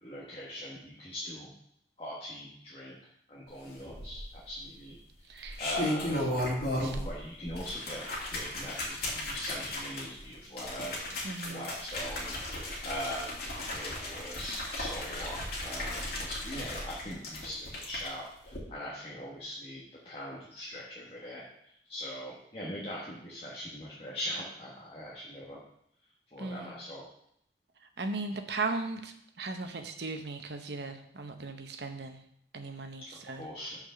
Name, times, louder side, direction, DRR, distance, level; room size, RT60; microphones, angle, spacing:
voice 1, 0.0-1.5 2.0-2.9 3.3-4.9 5.3-6.3 7.0-8.0 8.3-12.4 12.8-21.5 21.9-25.6 26.3-27.0 33.4-33.8, equal, 30° left, -5 dB, 1.2 m, -41 dB
sound 1, 3.9-4.5 5.3-7.2 7.5-18.1 18.5-18.6, left 1 dB, 55° left, 2.3 m, -35 dB
voice 2, 5.3-5.6 6.8-7.1 11.2-11.7 26.4-26.8 28.0-32.2 32.5-33.5, right 3 dB, 65° right, 6 dB, 0.8 m, -37 dB
6.0 x 4.9 x 6.6 m, 0.71 s
head